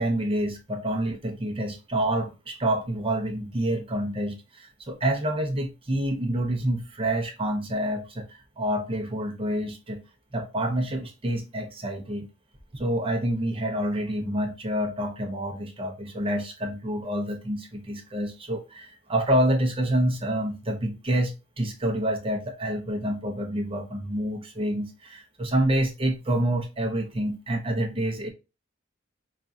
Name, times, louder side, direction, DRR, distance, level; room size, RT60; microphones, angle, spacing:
voice 1, 0.0-10.0 10.3-12.3 12.7-28.3, right 1 dB, 30° right, 0.7 m, -27 dB
5.2 x 2.4 x 2.6 m
head